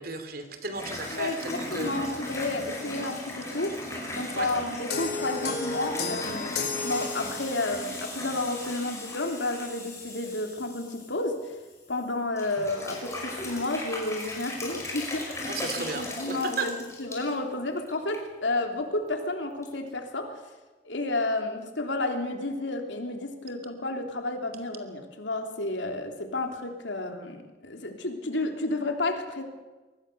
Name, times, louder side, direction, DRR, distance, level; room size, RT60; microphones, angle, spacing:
voice 1, 0.0-1.9 4.3-4.5 15.4-16.7, right 3 dB, 55° right, 7 dB, 2.9 m, -34 dB
sound 1, 0.7-12.0 12.4-17.3 17.8-18.2 18.5-18.6 19.6-19.7, left 2 dB, 15° left, 5.5 m, -37 dB
voice 2, 1.1-3.8 4.2-11.5 11.9-15.5 15.9-20.4 20.8-29.4, left 2 dB, 90° left, 4 dB, 3.3 m, -31 dB
sound 2, 4.9-7.8, left 4 dB, 60° left, 4.5 m, -33 dB
23.5 x 19.5 x 6.9 m, 1.2 s
head